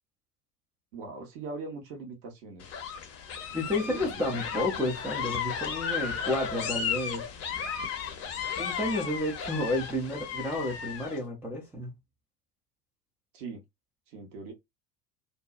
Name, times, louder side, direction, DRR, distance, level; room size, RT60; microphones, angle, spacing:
voice 1, 0.9-2.8 3.4-4.4 13.3-13.6 14.1-14.5, right 3 dB, 55° right, 1.0 m, -42 dB
sound 1, 2.6-11.2, left 7 dB, 30° left, 0.7 m, -34 dB
voice 2, 3.5-7.3 8.5-11.9, left 1 dB, 5° right, 0.3 m, -31 dB
2.6 x 2.2 x 2.3 m
figure-of-eight pair, 70°, 48 cm